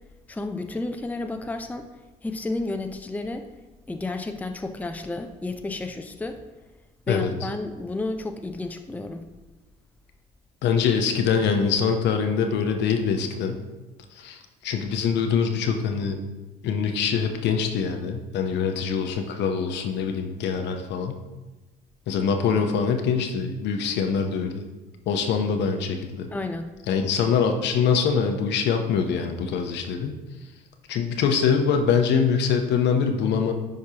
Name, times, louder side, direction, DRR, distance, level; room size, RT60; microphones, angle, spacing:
voice 1, 0.3-1.9 2.2-3.5 3.9-6.4 7.1-9.3 26.3-26.7, left 2 dB, 10° left, 6 dB, 0.5 m, -31 dB
voice 2, 10.6-13.6 14.2-16.2 16.6-21.2 22.1-24.6 25.1-26.3 26.9-30.2 30.9-33.5, left 6 dB, 60° left, 5 dB, 0.8 m, -24 dB
10.5 x 4.6 x 2.9 m, 1.1 s
hypercardioid pair, 60°, 20 cm